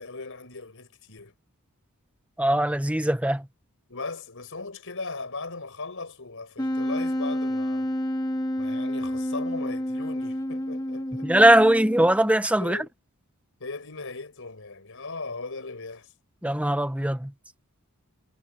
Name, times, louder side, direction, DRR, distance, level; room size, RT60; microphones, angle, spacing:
voice 1, 0.0-1.3 3.9-7.9 8.6-11.3 12.6-12.9 13.6-16.1, left 3 dB, 65° left, 5.8 m, -38 dB
voice 2, 2.4-3.5 11.2-12.8 16.4-17.3, right 1 dB, 5° right, 1.2 m, -20 dB
Wind instrument woodwind instrument, 6.6-12.2, left 1 dB, 20° left, 2.3 m, -29 dB
head